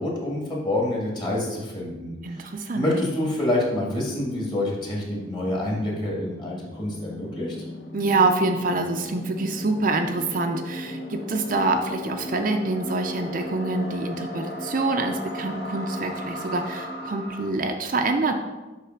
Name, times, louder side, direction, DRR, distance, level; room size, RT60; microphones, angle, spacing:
voice 1, 0.0-2.1 2.7-7.6, left 1 dB, 25° left, -3 dB, 1.9 m, -27 dB
sound 1, 2.0-2.1 2.3-17.5, left 1 dB, 65° left, 1.0 m, -37 dB
voice 2, 2.2-2.9 7.9-18.3, right 3 dB, 45° right, 5 dB, 0.5 m, -26 dB
8.1 x 3.3 x 5.8 m, 1.1 s
head